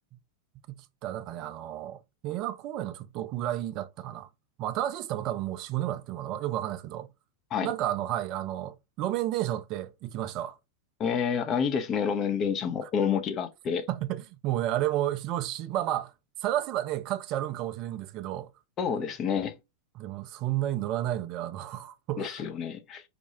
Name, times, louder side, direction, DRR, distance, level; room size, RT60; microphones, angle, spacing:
voice 1, 0.7-4.3 4.6-7.1 7.6-10.6 12.8-12.9 13.9-16.1 16.4-18.5 20.0-22.3, right 13 dB, 40° right, 0.4 m, -32 dB
voice 2, 11.0-13.9 18.8-19.5 22.2-23.0, left 7 dB, 30° left, 0.6 m, -28 dB
4.2 x 2.2 x 2.8 m
figure-of-eight pair, 90°, 0 cm